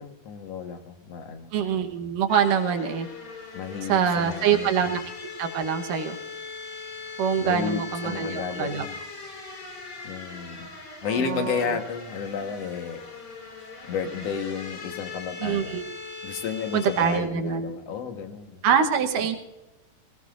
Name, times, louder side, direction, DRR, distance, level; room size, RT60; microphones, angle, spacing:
voice 1, 0.0-1.5 3.5-4.7 7.4-9.0 10.0-10.7 11.0-13.0 13.9-15.8 16.2-18.7, left 6 dB, 55° left, 6 dB, 2.1 m, -32 dB
voice 2, 1.5-3.1 3.9-6.2 7.2-8.8 11.0-11.8 15.4-15.9 16.7-17.7 18.6-19.4, right 7 dB, 75° right, 6 dB, 2.6 m, -25 dB
sound 1, 2.3-17.2, left 4 dB, 35° left, 2.4 m, -40 dB
21.0 x 18.0 x 2.5 m, 1.0 s
omnidirectional pair, 4.0 m